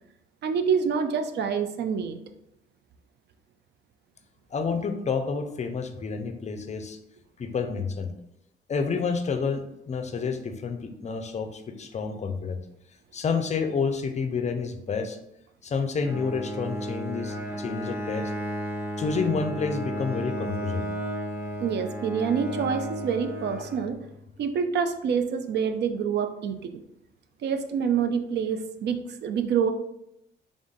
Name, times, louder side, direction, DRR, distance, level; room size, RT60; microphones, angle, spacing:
voice 1, 0.4-2.2 21.6-24.0 24.4-26.8 27.4-29.7, right 6 dB, 60° right, 8 dB, 0.4 m, -27 dB
voice 2, 4.5-7.0 7.4-8.1 8.7-12.6 13.1-15.2 15.6-18.3 19.0-20.9, left 5 dB, 35° left, 7 dB, 0.5 m, -29 dB
Bowed string instrument, 16.0-24.2, equal, 10° right, 1.1 m, -33 dB
3.6 x 2.5 x 3.8 m, 0.79 s
cardioid pair, 90°, 20 cm